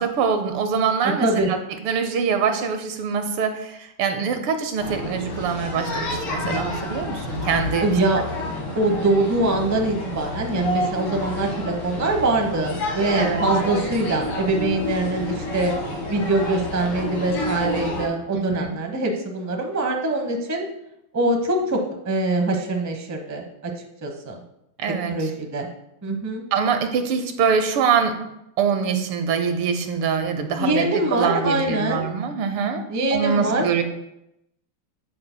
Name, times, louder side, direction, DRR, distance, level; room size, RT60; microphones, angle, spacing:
voice 1, 0.0-1.6 1.8-7.9 13.2-13.5 18.3-18.7 24.8-25.2 26.5-28.2 28.6-32.8 33.1-33.8, right 6 dB, 80° right, 7 dB, 1.7 m, -24 dB
voice 2, 1.0-1.5 7.8-8.2 8.8-15.7 16.1-20.7 21.1-21.8 22.0-23.7 24.0-24.4 25.1-25.7 26.0-26.4 30.6-32.1 32.9-33.6, right 2 dB, 20° right, 2 dB, 0.4 m, -23 dB
sound 1, 4.8-18.1, left 1 dB, 75° left, 2.5 m, -29 dB
9.0 x 8.6 x 2.2 m, 0.84 s
omnidirectional pair, 2.4 m